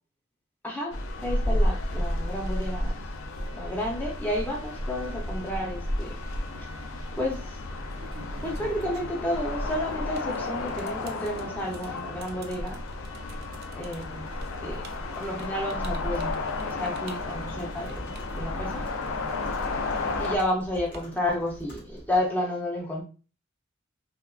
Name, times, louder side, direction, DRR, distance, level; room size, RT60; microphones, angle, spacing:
sound 1, 0.9-20.4, left 2 dB, 70° left, 0.4 m, -32 dB
voice 1, 1.2-3.0 3.5-6.1 6.6-6.7 7.2-7.6 8.4-12.8 13.7-14.3 14.6-14.9 15.1-18.8 20.2-23.0, left 1 dB, 10° left, -2 dB, 0.5 m, -31 dB
sound 2, 6.6-7.0 7.7-19.1 19.4-21.5, right 4 dB, 50° right, 0.4 m, -49 dB
Computer keyboard, 16.1-22.3, equal, 45° left, 1.2 m, -47 dB
3.5 x 2.2 x 2.3 m, 0.35 s
head